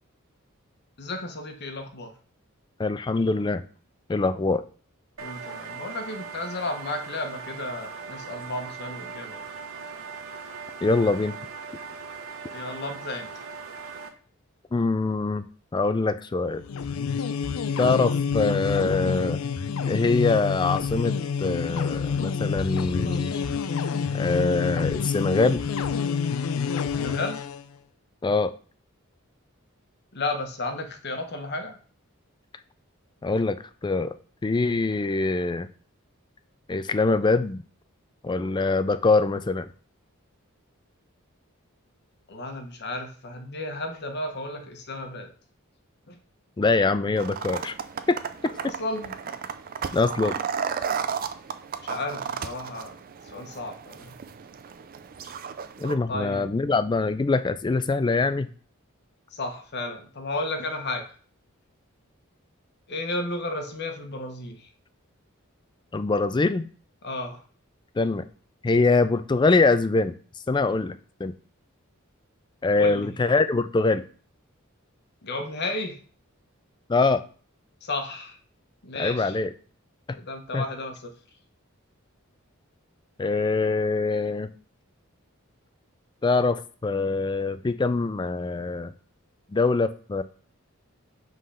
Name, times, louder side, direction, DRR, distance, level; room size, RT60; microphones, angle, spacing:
voice 1, 1.0-2.1 5.2-9.4 12.5-13.5 26.9-27.4 30.1-31.8 42.3-45.3 46.1-46.2 48.6-49.1 51.8-53.0 53.3-54.1 56.1-56.4 59.3-61.1 62.9-64.7 67.0-67.4 72.8-73.1 75.2-76.0 77.8-78.3 78.8-79.3 80.1-81.1, left 2 dB, 50° left, 5 dB, 1.1 m, -33 dB
voice 2, 2.8-3.6 4.1-4.6 10.8-11.4 14.7-15.4 15.7-16.6 17.8-19.4 19.9-21.1 21.4-23.4 24.1-25.6 28.2-28.5 33.2-33.6 33.8-34.1 34.4-35.7 36.7-37.6 38.2-39.7 46.6-47.7 48.1-48.2 48.4-48.7 49.9-50.4 55.8-58.5 65.9-66.7 68.0-68.3 68.6-70.2 70.5-71.3 72.6-74.0 76.9-77.2 78.9-79.5 80.5-80.6 83.2-84.5 86.2-88.9 89.5-90.2, left 3 dB, 20° left, 12 dB, 0.3 m, -23 dB
sound 1, 5.2-14.1, right 5 dB, 70° right, 0.9 m, -39 dB
sound 2, 16.6-27.6, left 6 dB, 85° left, 0.5 m, -28 dB
sound 3, 47.2-55.9, right 6 dB, 45° right, 0.4 m, -34 dB
5.2 x 3.9 x 5.6 m, 0.41 s
head